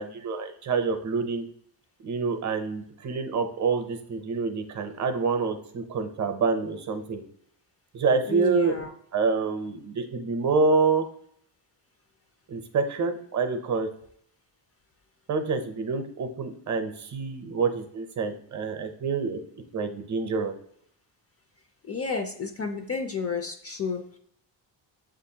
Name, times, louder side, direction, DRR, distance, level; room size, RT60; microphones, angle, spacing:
voice 1, 0.0-1.4 2.0-7.2 7.9-8.7 9.1-11.1 12.5-13.9 15.3-19.4 19.7-20.5, right 4 dB, 40° right, 7 dB, 0.6 m, -27 dB
voice 2, 8.3-8.9 21.9-24.2, left 5 dB, 35° left, 5 dB, 0.4 m, -31 dB
7.1 x 2.6 x 2.7 m, 0.66 s
cardioid pair, 110°, 45 cm